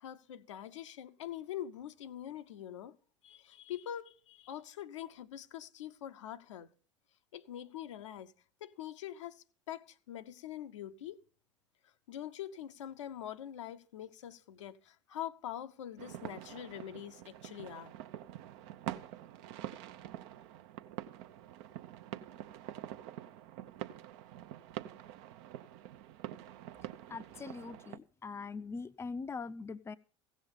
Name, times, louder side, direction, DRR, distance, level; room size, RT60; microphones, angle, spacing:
voice 1, 0.0-3.0 3.2-6.7 7.3-8.3 8.6-11.2 11.8-17.9, left 11 dB, 70° left, 0.8 m, -44 dB
sound 1, 16.0-28.0, right 12 dB, 55° right, 0.8 m, -46 dB
voice 2, 27.1-30.0, left 4 dB, 15° left, 0.6 m, -42 dB
16.0 x 7.4 x 5.3 m
figure-of-eight pair, 75°, 16 cm